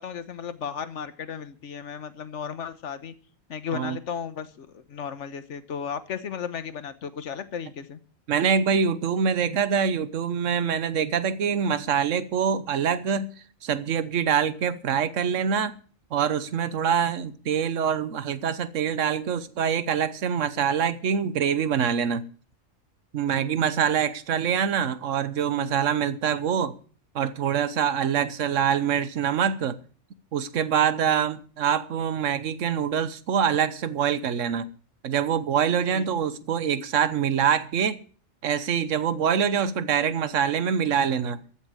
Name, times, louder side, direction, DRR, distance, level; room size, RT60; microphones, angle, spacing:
voice 1, 0.0-3.1 3.5-8.0 23.3-23.6 35.9-36.1, left 7 dB, 65° left, 1.4 m, -35 dB
voice 2, 8.3-13.3 13.6-15.7 16.1-22.2 23.1-26.7 27.1-29.8 30.3-34.7 35.0-38.0 38.4-41.4, right 7 dB, 70° right, 1.3 m, -25 dB
14.5 x 7.1 x 8.6 m
omnidirectional pair, 1.3 m